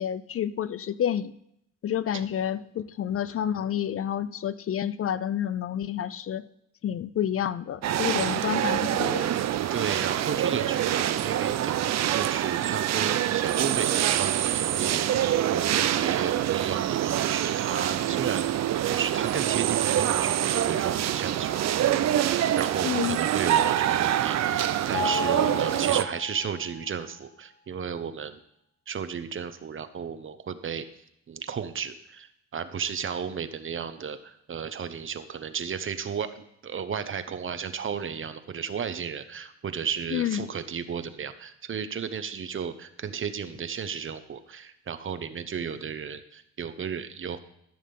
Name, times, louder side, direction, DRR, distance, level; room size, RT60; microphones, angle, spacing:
voice 1, 0.0-1.3 1.8-6.4 6.8-9.3 22.8-23.2 40.1-40.5, left 10 dB, 50° left, 16 dB, 0.5 m, -29 dB
sound 1, 7.8-26.0, right 11 dB, 60° right, 0.6 m, -25 dB
voice 2, 9.7-18.5 18.8-28.4 28.9-30.8 31.3-47.4, right 7 dB, 40° right, 11 dB, 1.0 m, -34 dB
Mallet percussion, 24.9-26.9, left 2 dB, 85° left, 2.4 m, -33 dB
14.0 x 6.4 x 5.4 m, 0.75 s
cardioid pair, 90°, 30 cm